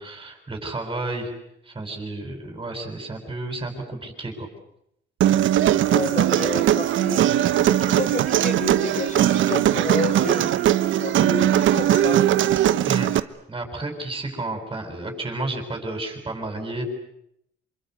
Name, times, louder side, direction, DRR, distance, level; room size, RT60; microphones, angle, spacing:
voice 1, 0.0-1.3 1.6-4.5 12.8-13.1 13.5-16.8, right 2 dB, 20° right, 3 dB, 7.9 m, -31 dB
Human voice, 5.2-13.2, right 12 dB, 75° right, 1.1 m, -20 dB
voice 2, 5.7-10.7 11.0-12.2, left 4 dB, 40° left, 11 dB, 4.4 m, -31 dB
27.5 x 25.0 x 8.3 m, 0.76 s
cardioid pair, 90°, 20 cm